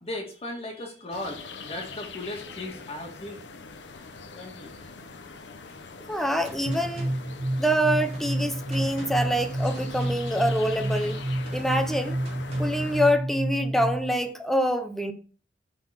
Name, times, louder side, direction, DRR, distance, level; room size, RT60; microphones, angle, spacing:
voice 1, 0.0-3.4 3.8-4.0 4.3-5.0, left 1 dB, 35° left, 1.8 m, -37 dB
sound 1, 1.1-13.1, left 4 dB, 80° left, 0.9 m, -43 dB
voice 2, 6.1-7.1 7.6-11.2 11.5-12.2 12.6-15.1, equal, ahead, 0.9 m, -25 dB
Gunshot gunfire, 6.4-12.9, right 1 dB, 35° right, 2.4 m, -47 dB
sound 2, 6.7-14.2, right 1 dB, 70° right, 1.3 m, -30 dB
7.7 x 4.2 x 5.7 m
head